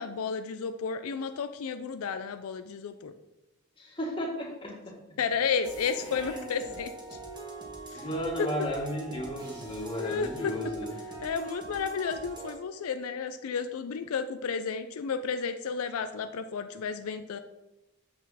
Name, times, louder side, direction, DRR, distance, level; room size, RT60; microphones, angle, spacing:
voice 1, 0.0-3.1 5.2-6.9 7.9-8.0 8.4-8.5 10.0-10.5 11.2-17.4, left 6 dB, 85° left, 9 dB, 0.4 m, -32 dB
voice 2, 3.8-5.2 6.0-6.7 7.9-10.9, equal, 25° left, -2 dB, 1.7 m, -34 dB
sound 1, 5.6-12.6, right 3 dB, 20° right, 1.2 m, -43 dB
7.3 x 6.1 x 4.1 m, 1.0 s
head